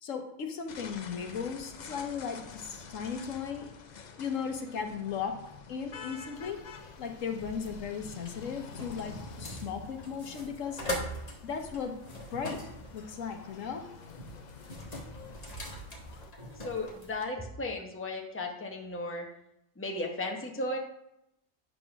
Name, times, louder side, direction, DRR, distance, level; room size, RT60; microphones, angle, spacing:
voice 1, 0.0-3.7 4.2-5.4 5.7-6.6 7.0-10.8 11.4-12.0 12.3-12.6 12.9-13.9, left 6 dB, 75° left, 4 dB, 1.3 m, -36 dB
sound 1, 0.7-16.3, left 6 dB, 50° left, 0.5 m, -48 dB
sound 2, 6.3-17.2, equal, 30° left, 1.3 m, -42 dB
voice 2, 16.6-19.3 19.8-20.8, left 2 dB, 10° left, 1 dB, 0.9 m, -35 dB
9.0 x 4.2 x 5.9 m, 0.83 s
omnidirectional pair, 1.4 m